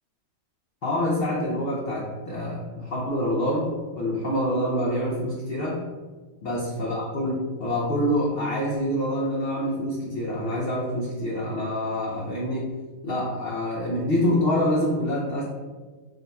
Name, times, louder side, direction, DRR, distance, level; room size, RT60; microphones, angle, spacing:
voice 1, 0.8-5.8 6.4-12.8 13.0-15.4, equal, 70° left, -4 dB, 0.5 m, -26 dB
3.8 x 2.2 x 4.0 m, 1.4 s
omnidirectional pair, 1.8 m